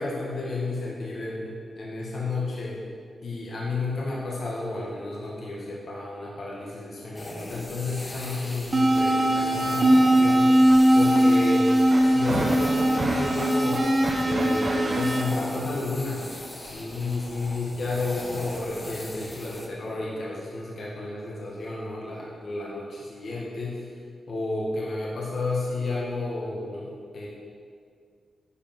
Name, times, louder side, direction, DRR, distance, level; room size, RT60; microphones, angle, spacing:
voice 1, 0.0-2.8 3.2-11.8 12.1-13.9 14.2-16.3 16.7-23.9 24.3-27.3, left 2 dB, 60° left, -4 dB, 1.6 m, -31 dB
sound 1, 7.2-19.7, left 1 dB, 25° left, 1.3 m, -40 dB
sound 2, 8.7-15.2, right 1 dB, 30° right, 1.2 m, -20 dB
9.9 x 5.1 x 5.9 m, 2.2 s
cardioid pair, 90°, 0 cm